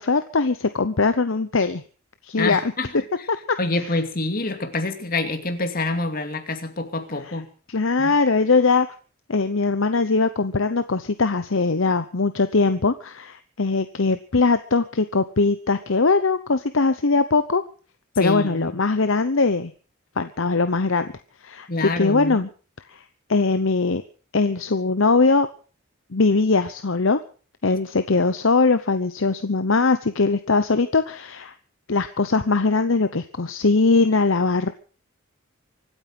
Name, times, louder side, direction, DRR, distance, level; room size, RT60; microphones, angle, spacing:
voice 1, 0.0-1.8 2.2-2.6 3.3-3.4 7.3-7.4 7.7-8.9 9.3-17.6 18.2-19.7 20.2-21.1 21.4-22.5 22.9-23.0 23.3-24.0 24.3-25.5 26.1-27.2 27.6-31.5 31.9-34.7, left 3 dB, 65° left, 10 dB, 0.9 m, -21 dB
voice 2, 2.3-2.9 3.6-7.5 8.0-8.1 18.2-18.7 21.7-22.4, left 2 dB, 45° left, 7 dB, 2.5 m, -26 dB
25.0 x 9.0 x 6.1 m, 0.40 s
head